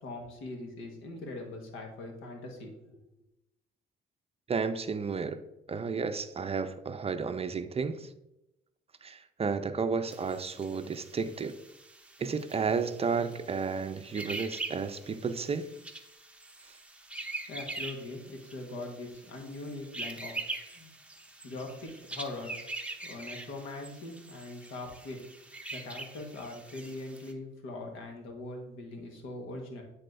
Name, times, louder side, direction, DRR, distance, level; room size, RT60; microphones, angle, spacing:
voice 1, 0.0-3.0 17.5-20.4 20.7-20.9 21.4-22.6 23.0-25.2 25.7-29.8, left 2 dB, 90° left, 2 dB, 1.4 m, -41 dB
voice 2, 4.5-5.4 5.7-8.1 9.0-11.6 12.2-15.7, right 5 dB, 30° right, 10 dB, 0.5 m, -32 dB
sound 1, 10.1-27.3, right 2 dB, 5° right, 0.7 m, -43 dB
9.6 x 4.1 x 2.6 m, 0.89 s
cardioid pair, 90°, 20 cm